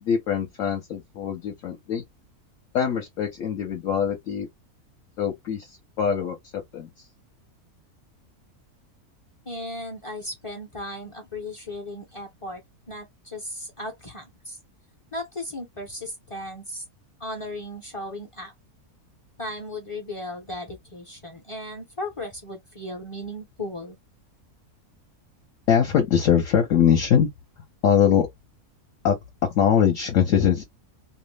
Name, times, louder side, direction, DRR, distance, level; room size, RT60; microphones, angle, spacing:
voice 1, 0.0-2.0 2.7-4.5 5.2-7.1 25.7-27.3 27.8-28.3 29.0-29.2 29.4-30.6, left 8 dB, 65° left, 1.0 m, -22 dB
voice 2, 9.5-12.6 12.9-14.6 15.1-16.8 17.2-18.5 19.4-24.0, left 1 dB, 35° left, 0.5 m, -36 dB
2.6 x 2.1 x 3.1 m
omnidirectional pair, 1.6 m